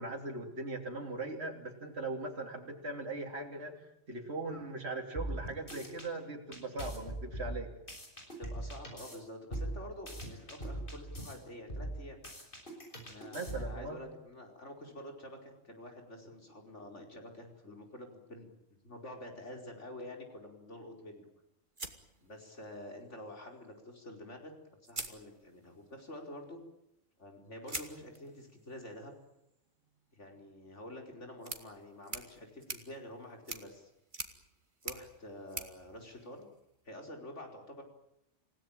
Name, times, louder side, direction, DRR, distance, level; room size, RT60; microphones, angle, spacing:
voice 1, 0.0-3.7 4.1-7.7 13.3-14.0, right 2 dB, 60° right, 2 dB, 3.5 m, -39 dB
sound 1, 5.2-6.1 6.5-9.2 9.5-11.3 11.7-13.8, right 1 dB, 45° left, 6.7 m, -41 dB
voice 2, 8.4-12.2 13.1-21.3 22.2-24.5 24.8-26.6 27.2-29.1 30.1-33.9 34.8-36.5 36.9-37.8, left 1 dB, 75° left, 3 dB, 5.2 m, -48 dB
sound 2, 21.8-22.9 24.2-24.3 24.8-25.8 27.7-36.9, right 2 dB, 40° right, 2.5 m, -47 dB
28.5 x 17.5 x 8.9 m, 0.86 s
omnidirectional pair, 1.2 m